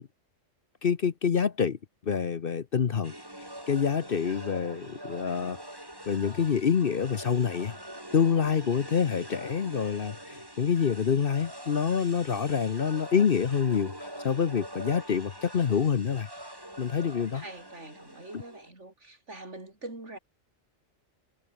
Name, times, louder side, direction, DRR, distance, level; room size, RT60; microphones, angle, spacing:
voice 1, 0.8-1.8 2.0-3.1 3.4-5.6 6.1-7.7 8.1-16.3 16.8-17.4 18.3-18.4, left 7 dB, 50° left, 1.0 m, -27 dB
sound 1, 3.0-18.7, right 1 dB, 15° right, 6.2 m, -44 dB
voice 2, 17.3-20.2, right 2 dB, 65° right, 5.1 m, -44 dB
omnidirectional pair, 1.3 m